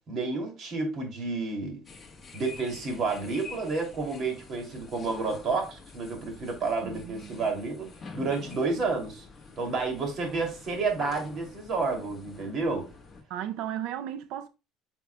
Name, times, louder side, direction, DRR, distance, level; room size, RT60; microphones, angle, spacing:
voice 1, 0.1-1.8 2.3-7.9 8.1-9.2 9.6-12.9, right 3 dB, 40° right, 2.7 m, -30 dB
sound 1, 1.8-13.2, left 4 dB, 20° left, 1.3 m, -47 dB
voice 2, 6.8-7.5 13.3-14.5, right 11 dB, 65° right, 0.5 m, -35 dB
9.9 x 5.8 x 2.2 m
cardioid pair, 160°, 0 cm